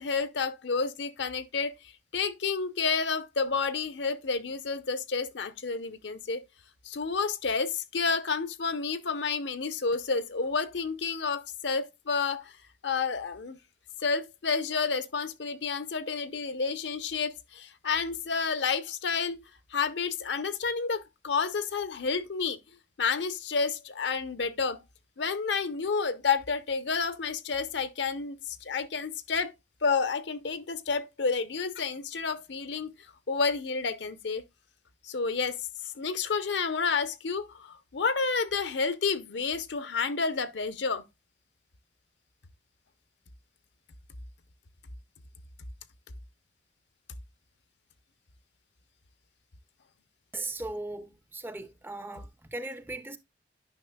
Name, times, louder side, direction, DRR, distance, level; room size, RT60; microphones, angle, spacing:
voice 1, 0.0-1.8 2.1-6.4 6.8-12.5 12.8-13.6 14.0-19.4 19.7-22.6 23.0-24.8 25.2-29.5 29.8-32.9 33.3-34.4 35.0-35.6 36.0-41.0, left 5 dB, 70° left, 0.7 m, -30 dB
voice 2, 50.3-53.2, right 2 dB, 10° right, 0.5 m, -38 dB
9.7 x 5.8 x 2.2 m
head